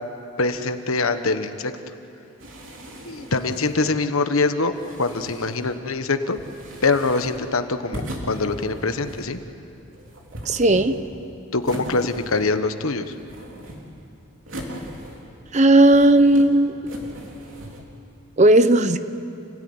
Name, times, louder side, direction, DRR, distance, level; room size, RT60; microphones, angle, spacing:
voice 1, 0.4-1.7 3.0-4.7 5.0-6.4 6.8-9.4 11.5-13.0, left 3 dB, 75° left, 9 dB, 1.2 m, -23 dB
sound 1, 2.4-3.9 4.6-5.8 6.3-7.5 7.9-9.4 9.9-11.2 11.6-12.7 13.0-14.0 14.5-15.4 15.8-16.5 16.8-17.8, equal, 60° right, 3.5 m, -38 dB
voice 2, 10.5-10.9 15.5-16.7 18.4-19.0, right 1 dB, 30° right, 11 dB, 0.8 m, -15 dB
29.5 x 16.5 x 9.7 m, 2.7 s
head